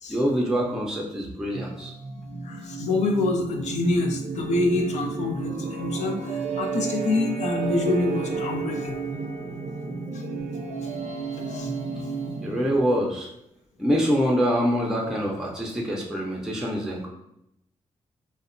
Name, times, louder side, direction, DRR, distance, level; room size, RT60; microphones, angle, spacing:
voice 1, 0.1-1.9 12.4-13.3 13.8-17.1, equal, 5° right, -2 dB, 0.5 m, -25 dB
sound 1, 1.5-12.9, right 4 dB, 65° right, 0.4 m, -32 dB
voice 2, 2.4-9.0 10.1-10.2 11.4-11.7, left 2 dB, 70° left, 3 dB, 0.4 m, -26 dB
2.6 x 2.0 x 2.5 m, 0.81 s
cardioid pair, 60°, 12 cm